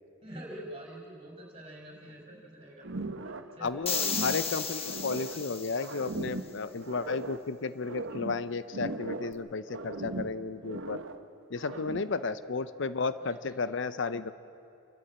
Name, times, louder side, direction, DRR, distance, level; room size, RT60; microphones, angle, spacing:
voice 1, 0.2-2.9 3.2-3.9 11.7-11.9 13.2-13.5, right 1 dB, 30° right, -1 dB, 5.2 m, -46 dB
sound 1, 2.8-3.6 3.8-5.5 5.8-7.5 7.8-9.4 9.7-11.2 11.6-12.2, right 2 dB, 65° right, 1.0 m, -39 dB
voice 2, 3.6-11.0 11.5-14.3, left 4 dB, 60° left, 13 dB, 0.6 m, -33 dB
sound 2, 3.9-6.1, left 6 dB, 30° left, 1.4 m, -34 dB
28.0 x 13.0 x 8.6 m, 2.7 s
head